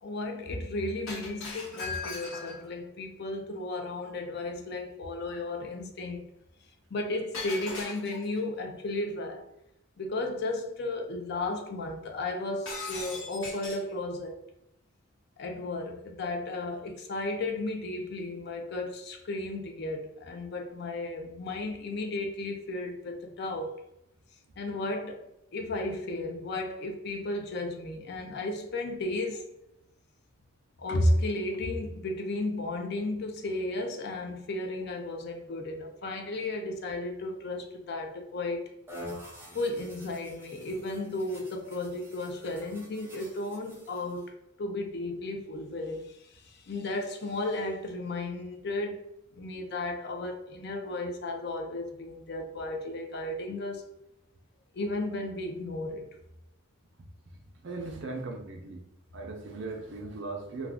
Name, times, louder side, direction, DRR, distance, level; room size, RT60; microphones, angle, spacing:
voice 1, 0.0-6.3 6.9-9.4 10.0-14.4 15.4-23.8 24.6-25.2 25.5-29.4 30.8-38.6 39.5-49.0 49.3-53.8 54.7-56.1, left 2 dB, 50° left, 0.4 m, -34 dB
Shatter, 1.1-2.7 7.3-8.4 12.7-13.9, left 4 dB, 70° left, 1.0 m, -39 dB
sound 1, 38.9-44.3, left 1 dB, 10° right, 0.5 m, -47 dB
voice 2, 57.0-58.8 59.1-60.7, right 3 dB, 60° right, 0.5 m, -39 dB
2.3 x 2.3 x 3.5 m
head